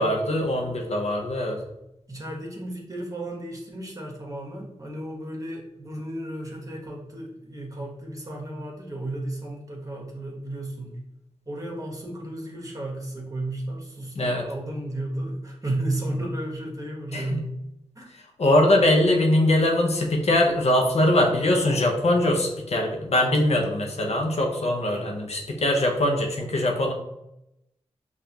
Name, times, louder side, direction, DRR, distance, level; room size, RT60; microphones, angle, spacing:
voice 1, 0.0-1.6 14.2-14.4 17.1-17.4 18.4-26.9, left 1 dB, 65° left, 1 dB, 0.8 m, -22 dB
voice 2, 2.1-11.0 11.4-17.6 17.9-18.1, right 1 dB, 30° right, -2 dB, 1.4 m, -33 dB
5.1 x 2.6 x 2.9 m, 0.86 s
cardioid pair, 45°, 12 cm